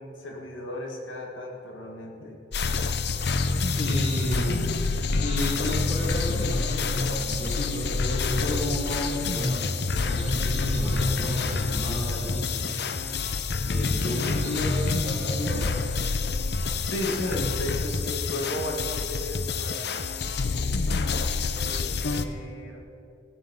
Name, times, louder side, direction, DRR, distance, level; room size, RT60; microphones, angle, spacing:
voice 1, 0.0-2.4 16.9-19.9 20.6-22.8, left 1 dB, 85° left, -1 dB, 1.9 m, -35 dB
sound 1, 2.5-22.2, left 4 dB, 55° left, 0.6 m, -27 dB
voice 2, 3.7-4.6 5.2-9.7 10.0-12.7 13.6-15.7, equal, 35° left, -11 dB, 3.0 m, -31 dB
17.0 x 7.3 x 5.7 m, 2.8 s
head